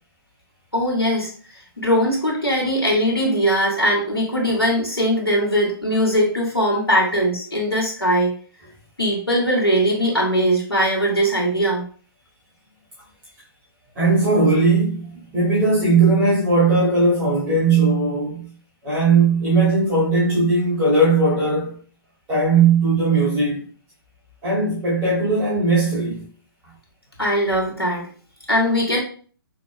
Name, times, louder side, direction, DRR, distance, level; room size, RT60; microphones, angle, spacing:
voice 1, 0.7-1.3 1.8-8.3 9.0-11.8 27.2-28.1 28.5-29.0, equal, 90° left, 2.0 m, -20 dB
voice 2, 13.9-18.5 18.8-21.8 22.3-23.7 24.4-26.3, right 3 dB, 20° right, 2.2 m, -18 dB
6.7 x 3.0 x 2.2 m
figure-of-eight pair, 125°, 12 cm